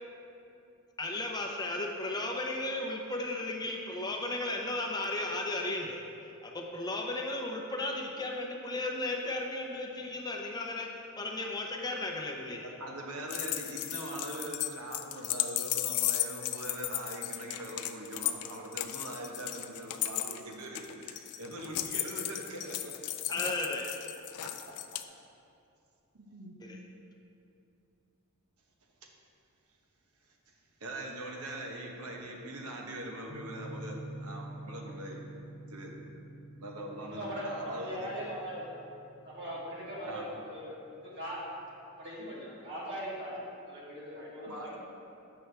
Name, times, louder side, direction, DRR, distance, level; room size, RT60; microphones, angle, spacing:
voice 1, 1.0-6.0 6.4-12.7 23.3-23.9 26.6-26.8, left 2 dB, 20° left, 1 dB, 0.6 m, -35 dB
voice 2, 12.6-22.9 24.4-24.5 26.1-26.6 30.8-35.2 35.7-35.9 36.6-38.1 39.6-40.3 44.4-44.7, right 1 dB, 85° right, 1 dB, 0.9 m, -42 dB
sound 1, 13.3-25.0, left 13 dB, 90° left, 0.3 m, -35 dB
sound 2, 33.3-42.0, right 1 dB, 60° left, 0.7 m, -48 dB
voice 3, 37.0-38.6 39.2-40.8 41.0-41.4 42.0-44.8, equal, 55° right, -7 dB, 1.7 m, -40 dB
7.9 x 5.7 x 3.3 m, 2.6 s
head